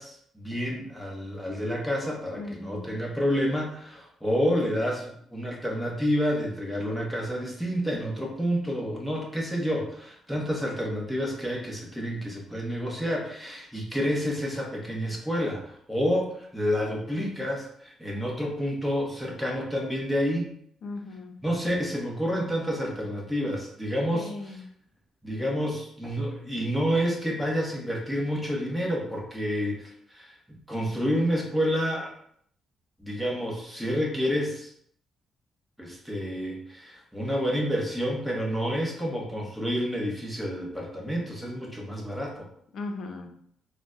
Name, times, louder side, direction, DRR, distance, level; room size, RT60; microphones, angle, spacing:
voice 1, 0.0-20.5 21.4-24.3 25.2-32.1 33.0-34.7 35.8-42.5, equal, ahead, -2 dB, 0.8 m, -29 dB
voice 2, 2.3-2.9 20.8-21.3 24.1-24.6 42.7-43.3, left 3 dB, 65° left, 4 dB, 0.5 m, -37 dB
3.9 x 2.0 x 2.4 m, 0.66 s
cardioid pair, 90°, 0 cm